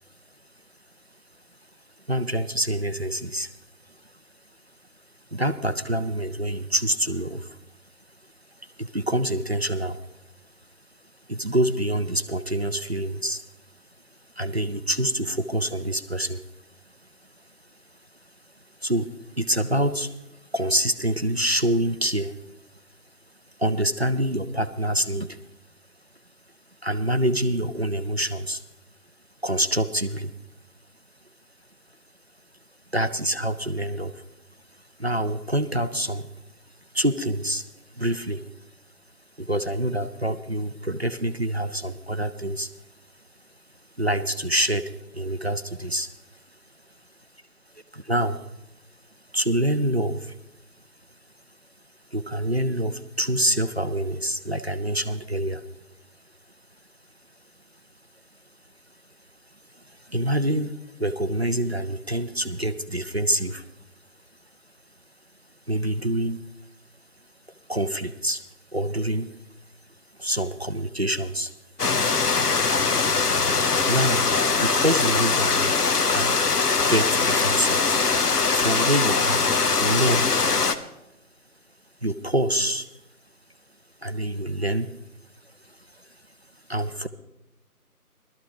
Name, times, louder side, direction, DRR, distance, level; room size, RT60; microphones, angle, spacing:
voice 1, 2.1-3.5 5.3-7.6 8.6-10.0 11.3-13.4 14.4-16.4 18.8-19.1 19.4-20.1 20.5-22.3 23.6-25.4 26.8-28.6 29.4-30.3 32.9-34.2 35.0-36.3 36.9-37.6 37.9-38.4 39.4-42.7 44.0-46.1 47.9-48.4 49.3-50.4 52.1-55.6 59.8-63.7 65.7-66.4 67.7-68.4 68.7-69.3 70.2-71.5 73.8-74.3 74.6-75.8 76.1-76.5 76.9-77.9 78.5-79.5 79.8-80.3 82.0-82.9 84.0-84.9 85.9-86.0 86.7-87.1, right 1 dB, 45° right, 10 dB, 0.5 m, -26 dB
sound 1, 71.8-80.8, left 4 dB, 80° left, 1.0 m, -22 dB
18.0 x 13.0 x 3.0 m, 0.91 s
figure-of-eight pair, 165°, 46 cm